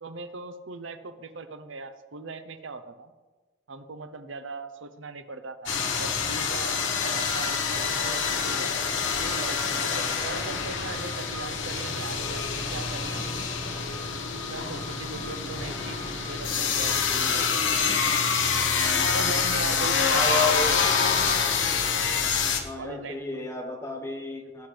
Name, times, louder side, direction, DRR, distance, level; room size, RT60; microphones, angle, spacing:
voice 1, 0.0-3.1 3.7-6.8 7.0-8.7 9.2-13.3 14.3-18.0 19.1-20.8 22.8-23.5, right 3 dB, 80° right, 9 dB, 0.8 m, -39 dB
sound 1, 5.7-22.6, left 5 dB, 75° left, 1.2 m, -26 dB
voice 2, 20.1-20.8 22.6-24.7, left 3 dB, 15° left, 3 dB, 1.2 m, -31 dB
17.0 x 8.0 x 3.3 m, 1.2 s
head